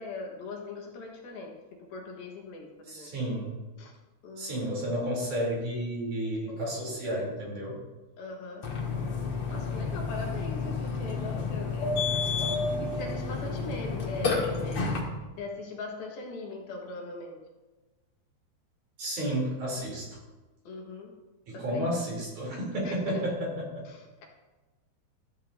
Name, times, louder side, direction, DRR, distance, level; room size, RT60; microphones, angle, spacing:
voice 1, 0.0-1.5 1.8-3.1 3.8-3.9 4.2-4.7 6.5-6.8 8.2-8.7 9.5-14.9 15.4-17.4 20.6-21.1 21.5-22.0 22.8-23.2 23.8-24.2, left 3 dB, 65° left, 0 dB, 3.1 m, -41 dB
voice 2, 2.9-3.5 4.4-7.8 19.0-20.0 21.5-23.8, right 1 dB, 45° right, -3 dB, 4.8 m, -32 dB
Burping eructation, 8.6-15.0, left 4 dB, 45° left, 2.0 m, -30 dB
14.5 x 14.5 x 2.8 m, 1.2 s
omnidirectional pair, 5.0 m